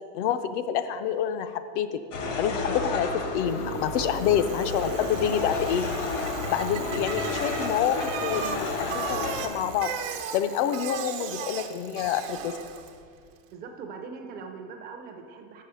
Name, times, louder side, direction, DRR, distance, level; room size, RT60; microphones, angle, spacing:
voice 1, 0.1-2.0 2.4-5.8 6.5-9.9 10.3-12.5, left 9 dB, 70° left, 9 dB, 0.6 m, -27 dB
sound 1, 2.1-9.5, left 3 dB, 85° left, 1.4 m, -31 dB
Bicycle, 3.6-13.0, right 8 dB, 85° right, 0.9 m, -37 dB
voice 2, 13.5-15.6, right 5 dB, 25° right, 3 dB, 0.5 m, -41 dB
6.6 x 5.6 x 6.7 m, 2.3 s
cardioid pair, 180°, 37 cm